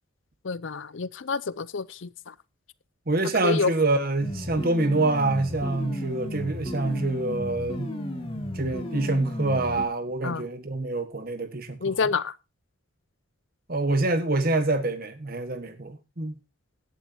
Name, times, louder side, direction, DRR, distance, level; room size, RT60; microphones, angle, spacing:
voice 1, 0.4-2.3 3.4-3.7 10.2-10.5 11.8-12.3, left 4 dB, 65° left, 0.6 m, -28 dB
voice 2, 3.1-7.9 8.5-11.9 13.7-16.4, right 2 dB, 45° right, 1.4 m, -26 dB
sound 1, 4.2-9.8, left 1 dB, 25° left, 2.4 m, -34 dB
17.0 x 11.0 x 2.8 m
head